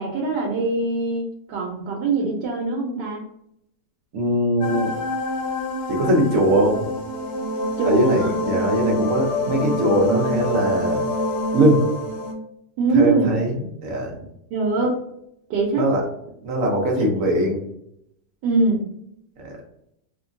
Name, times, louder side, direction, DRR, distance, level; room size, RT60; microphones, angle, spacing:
voice 1, 0.0-3.2 7.8-8.3 12.8-13.4 14.5-15.0 15.5-15.9 18.4-18.9, right 3 dB, 90° right, -2 dB, 1.2 m, -22 dB
voice 2, 4.1-4.9 5.9-6.8 7.8-11.0 11.5-11.8 12.9-14.1 15.8-16.0 16.4-17.6 19.4-19.5, right 1 dB, 65° right, 0 dB, 0.9 m, -21 dB
sound 1, 4.6-12.3, left 1 dB, 70° left, 1.2 m, -26 dB
3.0 x 2.1 x 2.5 m, 0.77 s
omnidirectional pair, 1.8 m